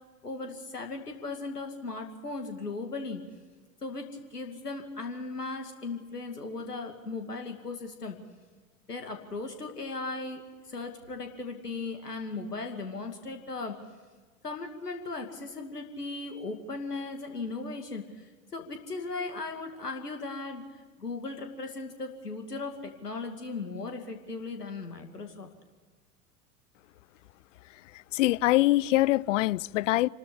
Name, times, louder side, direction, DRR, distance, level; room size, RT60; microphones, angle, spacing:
voice 1, 0.2-3.2 3.8-4.0 4.3-8.2 8.9-10.4 10.7-13.8 14.4-18.3 18.5-20.6 21.0-25.5, left 3 dB, 85° left, 2.5 m, -37 dB
voice 2, 28.1-30.1, left 17 dB, 55° left, 0.6 m, -24 dB
28.0 x 13.0 x 8.5 m
figure-of-eight pair, 85°, 46 cm